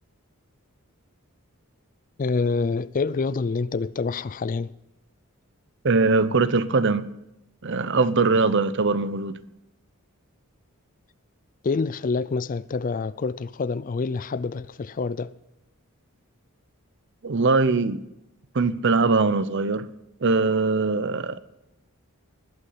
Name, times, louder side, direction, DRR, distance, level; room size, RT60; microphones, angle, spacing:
voice 1, 2.2-4.7 11.6-15.3, left 4 dB, 40° left, 0.4 m, -27 dB
voice 2, 5.8-7.1 7.6-9.4 17.2-18.0 18.5-19.9 20.2-21.4, right 3 dB, 55° right, 0.7 m, -21 dB
20.5 x 8.5 x 5.7 m
head